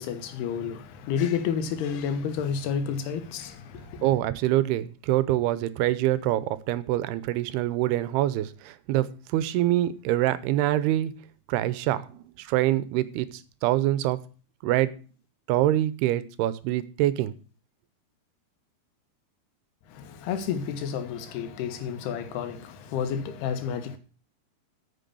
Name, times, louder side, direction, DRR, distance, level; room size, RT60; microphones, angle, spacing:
voice 1, 0.0-4.1 19.9-24.0, left 7 dB, 85° left, 3.2 m, -30 dB
voice 2, 4.0-11.1 11.5-14.2 14.6-14.9 15.5-17.3, right 14 dB, 90° right, 2.7 m, -25 dB
9.2 x 6.8 x 6.8 m
omnidirectional pair, 4.5 m